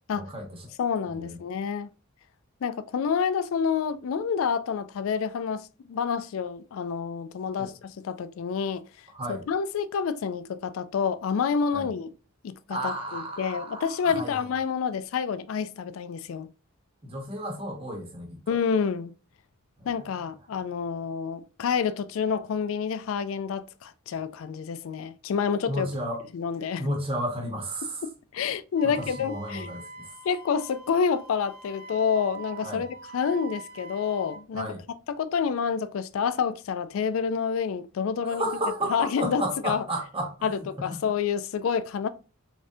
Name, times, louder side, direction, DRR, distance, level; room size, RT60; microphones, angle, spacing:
voice 1, 0.1-0.7 1.1-1.4 7.6-7.7 9.1-9.4 11.7-11.9 12.7-14.4 17.0-18.6 20.0-20.1 25.7-26.2 26.8-28.1 28.8-30.1 32.6-32.9 34.5-34.8 38.2-41.0, right 1 dB, 25° right, 0.9 m, -33 dB
voice 2, 0.8-1.9 2.6-8.8 9.3-12.1 12.4-16.5 18.5-19.1 19.9-25.9 26.3-26.8 28.0-29.7 30.2-32.9 33.1-34.7 35.1-38.5 38.9-39.8 40.4-42.1, left 6 dB, 70° left, 0.3 m, -28 dB
Wind instrument woodwind instrument, 28.8-34.4, right 3 dB, 45° right, 0.5 m, -44 dB
3.7 x 3.3 x 2.6 m
head